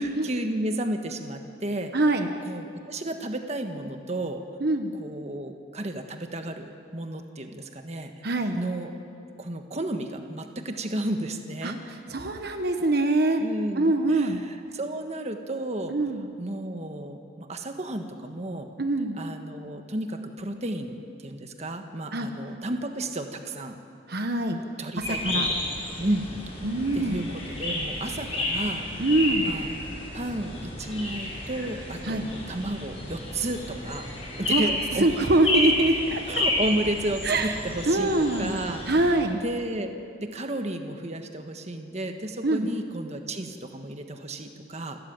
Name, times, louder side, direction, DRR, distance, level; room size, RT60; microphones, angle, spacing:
voice 1, 0.0-1.9 2.4-4.4 4.9-8.1 8.5-8.9 9.4-11.8 13.4-16.0 16.4-18.7 19.2-23.7 24.8-25.4 26.0-26.3 26.9-28.9 29.3-29.7 30.1-34.1 34.4-35.1 36.3-38.8 39.4-39.9 40.2-45.0, right 1 dB, 35° right, 5 dB, 1.4 m, -32 dB
voice 2, 1.9-2.3 4.6-4.9 8.2-8.6 11.6-11.7 12.1-13.4 13.8-14.4 15.9-16.3 18.8-19.2 22.1-22.3 24.1-24.6 25.0-25.5 26.6-27.3 29.0-29.5 32.1-32.2 34.5-34.6 35.0-36.2 37.2-37.5 37.9-38.5 38.9-39.4 42.4-42.7, right 2 dB, 55° right, 6 dB, 1.3 m, -24 dB
sound 1, 25.0-39.1, left 1 dB, 30° left, 7.0 m, -31 dB
28.0 x 13.5 x 9.0 m, 2.4 s
head